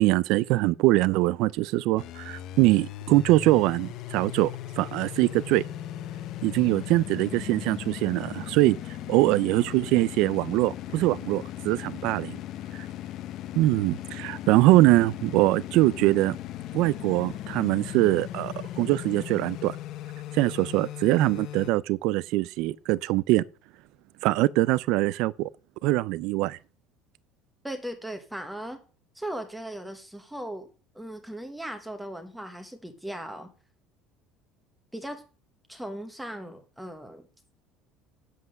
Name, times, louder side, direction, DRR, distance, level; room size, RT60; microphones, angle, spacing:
voice 1, 0.0-5.6 6.4-8.8 9.1-12.4 12.7-12.9 13.6-16.4 16.7-19.8 20.3-23.4 24.2-25.5 25.8-26.6, right 18 dB, 65° right, 0.4 m, -23 dB
sound 1, 2.0-21.7, left 12 dB, 50° left, 0.8 m, -38 dB
voice 2, 27.6-28.8 29.1-30.7 30.9-33.5 34.9-35.2 35.7-37.2, right 1 dB, 5° right, 1.1 m, -37 dB
8.2 x 7.6 x 6.5 m
cardioid pair, 160°, 0 cm